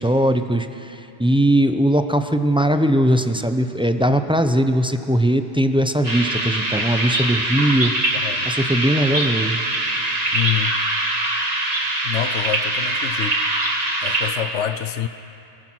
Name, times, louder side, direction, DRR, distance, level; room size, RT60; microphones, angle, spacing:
voice 1, 0.0-7.9 8.4-9.6, right 1 dB, 5° right, 0.6 m, -19 dB
sound 1, 6.0-14.3, right 1 dB, 35° right, 1.9 m, -23 dB
voice 2, 7.1-7.4 8.1-8.5 10.3-10.7 12.0-13.4 14.0-15.1, left 11 dB, 85° left, 1.0 m, -27 dB
23.0 x 19.5 x 6.2 m
omnidirectional pair, 1.2 m